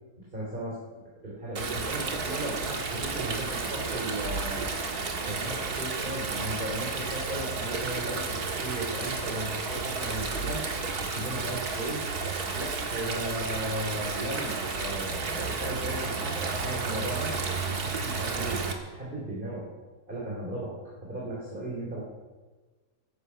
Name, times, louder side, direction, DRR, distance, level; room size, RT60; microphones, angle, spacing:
voice 1, 0.2-0.8 1.2-4.7 5.2-10.6 11.0-12.1 12.6-17.3 17.6-18.7 18.9-19.7 20.1-22.0, right 1 dB, 30° right, -5 dB, 3.4 m, -36 dB
Stream, 1.6-18.7, right 4 dB, 90° right, 2.3 m, -32 dB
15.5 x 14.5 x 5.7 m, 1.3 s
omnidirectional pair, 1.6 m